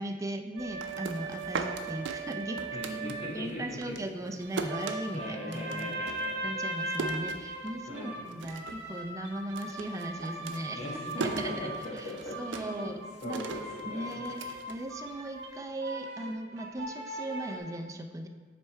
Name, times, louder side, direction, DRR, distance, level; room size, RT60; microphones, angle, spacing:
voice 1, 0.0-2.7 3.3-6.0 6.4-10.8 11.2-11.7 12.0-12.1 12.4-13.4 13.9-18.3, right 1 dB, 20° right, 5 dB, 0.4 m, -38 dB
sound 1, 0.6-3.4 4.4-17.6, right 2 dB, 65° right, 1.0 m, -39 dB
sound 2, 0.6-3.5 3.8-8.0 8.3-8.9 9.1-15.4, right 4 dB, 85° right, 0.5 m, -39 dB
voice 2, 2.7-4.0 5.1-6.6 7.9-8.2 10.7-12.9 13.2-14.2, left 1 dB, 40° left, -4 dB, 1.3 m, -39 dB
7.3 x 3.4 x 4.5 m, 1.5 s
head